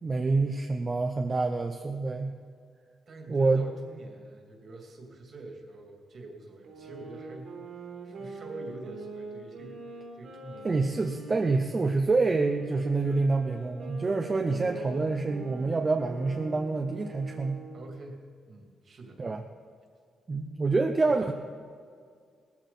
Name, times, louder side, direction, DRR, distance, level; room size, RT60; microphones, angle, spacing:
voice 1, 0.0-2.3 3.3-3.6 10.6-17.6 19.2-19.4 20.3-21.3, right 3 dB, 25° right, 4 dB, 0.7 m, -27 dB
voice 2, 3.1-7.6 8.0-10.8 17.7-19.2 21.0-21.3, right 2 dB, 45° right, 1 dB, 2.5 m, -45 dB
sound 1, 6.6-11.9 12.4-18.0, right 3 dB, 70° right, 3.4 m, -44 dB
19.0 x 14.5 x 4.2 m, 2.1 s
wide cardioid pair, 155°, 0 cm